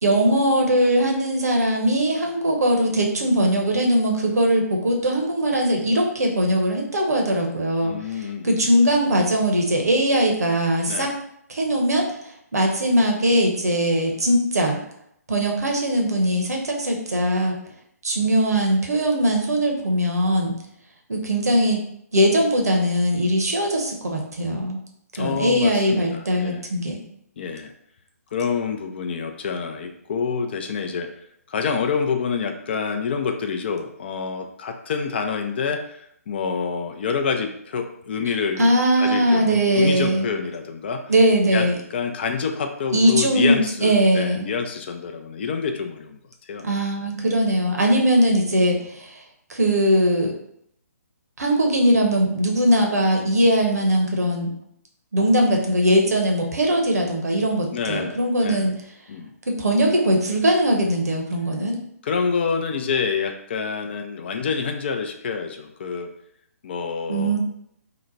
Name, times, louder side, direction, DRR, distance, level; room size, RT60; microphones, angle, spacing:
voice 1, 0.0-7.9 8.4-11.1 11.5-12.1 12.5-14.8 15.3-17.6 18.0-20.5 21.1-21.8 22.1-24.8 25.1-27.0 38.6-40.3 41.1-41.8 42.9-44.5 46.6-49.1 49.5-50.3 51.4-54.5 55.1-58.7 59.5-61.8 67.1-67.4, equal, 70° right, 1 dB, 0.8 m, -20 dB
voice 2, 7.8-8.8 10.9-11.1 12.5-12.7 25.1-26.7 27.4-27.7 28.3-31.1 31.5-41.0 41.5-46.6 57.7-58.7 59.1-59.3 62.0-66.1 66.6-67.4, left 5 dB, 40° left, 6 dB, 0.4 m, -27 dB
2.9 x 2.1 x 3.9 m, 0.72 s
figure-of-eight pair, 140°, 9 cm